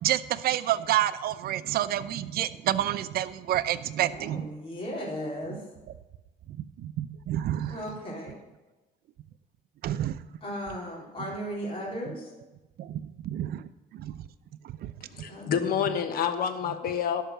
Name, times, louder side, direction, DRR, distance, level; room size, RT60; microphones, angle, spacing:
voice 1, 0.0-4.5 5.5-5.6 6.8-7.8 9.8-10.2 12.1-12.2 12.8-13.6 13.9-14.1 14.8-14.9, right 12 dB, 65° right, 13 dB, 0.6 m, -29 dB
voice 2, 4.1-5.6 7.7-8.4 10.4-12.3 15.3-15.5, equal, 30° left, -5 dB, 3.8 m, -36 dB
voice 3, 15.1-17.2, left 8 dB, 60° left, 9 dB, 1.2 m, -28 dB
12.5 x 5.8 x 7.5 m, 1.1 s
cardioid pair, 110°, 17 cm